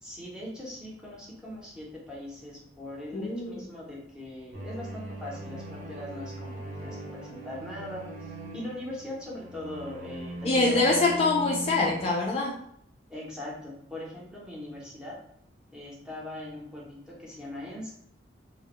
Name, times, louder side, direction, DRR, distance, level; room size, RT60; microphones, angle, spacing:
voice 1, 0.0-11.2 13.1-15.2 15.7-17.9, left 1 dB, 5° right, -5 dB, 0.6 m, -41 dB
voice 2, 3.1-3.6 10.4-12.5, left 3 dB, 35° left, -2 dB, 0.3 m, -24 dB
sound 1, 4.5-12.0, right 1 dB, 45° right, 0.7 m, -40 dB
2.1 x 2.0 x 2.9 m, 0.69 s
head